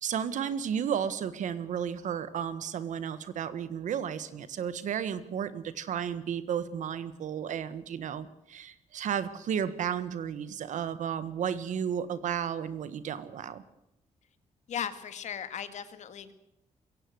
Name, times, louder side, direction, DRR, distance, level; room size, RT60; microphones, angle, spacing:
voice 1, 0.0-13.6, right 8 dB, 75° right, 14 dB, 1.6 m, -33 dB
voice 2, 14.7-16.3, left 8 dB, 70° left, 11 dB, 2.0 m, -37 dB
22.5 x 17.0 x 7.9 m, 0.85 s
cardioid pair, 120°, 13 cm